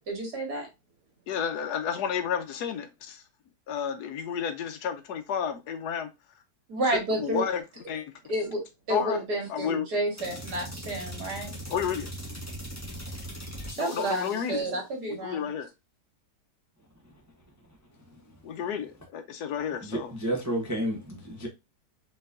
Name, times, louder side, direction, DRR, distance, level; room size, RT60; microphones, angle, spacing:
voice 1, 0.1-0.7 6.7-7.4 8.3-8.6 8.9-11.5 13.8-15.5, right 1 dB, 75° right, 2.3 m, -30 dB
voice 2, 1.3-3.2 3.7-6.1 6.9-8.1 8.9-9.2 9.5-9.9 11.7-12.1 13.8-14.7 15.1-15.7 18.4-20.1, left 8 dB, 80° left, 1.2 m, -31 dB
sound 1, 10.2-14.6, equal, 10° left, 1.3 m, -40 dB
voice 3, 18.0-18.3 19.8-21.5, right 1 dB, 15° right, 0.6 m, -31 dB
4.3 x 4.0 x 2.5 m
omnidirectional pair, 1.7 m